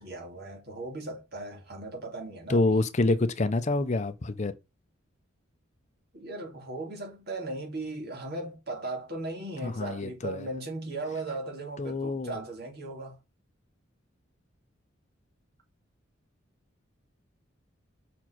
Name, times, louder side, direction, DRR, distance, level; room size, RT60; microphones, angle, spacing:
voice 1, 0.0-2.7 6.1-13.2, right 2 dB, 50° right, 2.3 m, -37 dB
voice 2, 2.5-4.5 9.6-10.5 11.8-12.3, left 2 dB, 35° left, 0.6 m, -27 dB
6.0 x 4.4 x 4.5 m
head